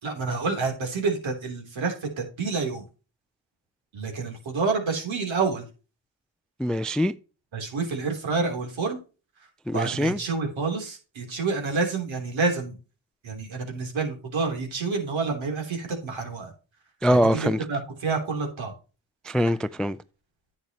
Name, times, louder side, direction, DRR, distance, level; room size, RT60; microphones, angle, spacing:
voice 1, 0.0-2.8 3.9-5.6 7.5-9.0 9.7-12.8 13.2-16.5 17.1-18.7, right 4 dB, 65° right, 3.4 m, -28 dB
voice 2, 6.6-7.1 9.7-10.2 17.0-17.7 19.2-20.0, equal, ahead, 0.4 m, -23 dB
10.0 x 8.3 x 2.9 m
supercardioid pair, 50°, 49 cm